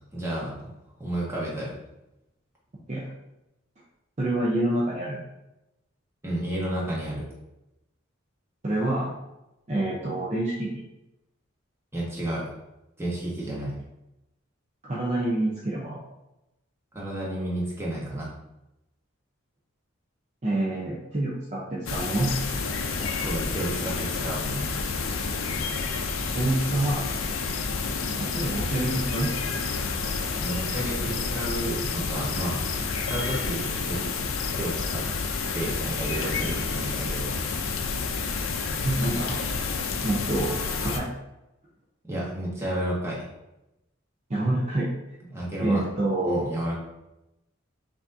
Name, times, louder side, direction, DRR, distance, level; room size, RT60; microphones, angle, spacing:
voice 1, 0.1-0.7 1.0-1.7 6.2-7.2 11.9-12.4 13.0-13.7 16.9-18.3 23.2-24.8 30.4-32.6 33.1-34.0 34.6-35.0 35.5-37.3 42.0-43.3 45.3-45.8 46.3-46.7, right 1 dB, 15° right, -5 dB, 1.0 m, -31 dB
voice 2, 4.2-5.2 8.6-9.2 9.7-10.8 14.8-16.0 20.4-22.3 26.3-27.1 28.2-29.3 38.8-41.1 44.3-44.9 45.6-46.5, right 1 dB, 35° right, -5 dB, 0.6 m, -27 dB
sound 1, 21.9-41.0, left 4 dB, 75° left, 0.5 m, -29 dB
5.8 x 2.7 x 2.6 m, 0.92 s
head